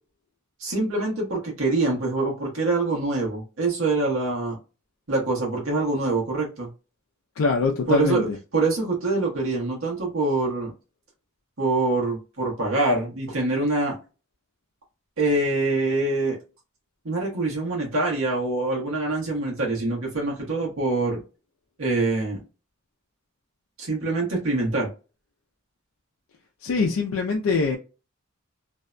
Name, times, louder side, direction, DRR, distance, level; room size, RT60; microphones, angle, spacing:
voice 1, 0.6-4.6 5.1-6.7 7.9-8.3 8.5-10.7 11.6-14.0 15.2-16.4 17.0-21.2 21.8-22.4 23.8-24.9, right 2 dB, 85° right, 1.1 m, -25 dB
voice 2, 7.4-8.4 26.6-27.8, left 4 dB, 80° left, 0.4 m, -23 dB
2.6 x 2.1 x 2.4 m
head